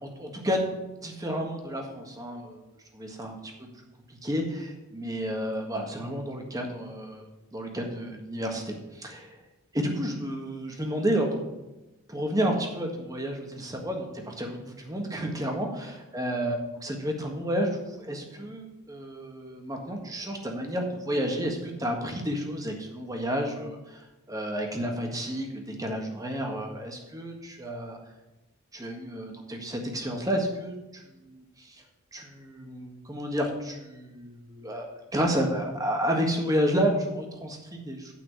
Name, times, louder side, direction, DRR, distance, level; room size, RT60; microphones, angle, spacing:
voice 1, 0.0-0.6 1.0-2.6 2.9-3.7 4.1-9.4 9.7-11.4 12.1-16.5 16.8-28.0 28.7-31.8 32.1-38.1, equal, 15° right, 2 dB, 1.6 m, -31 dB
9.0 x 5.9 x 8.1 m, 1.0 s
head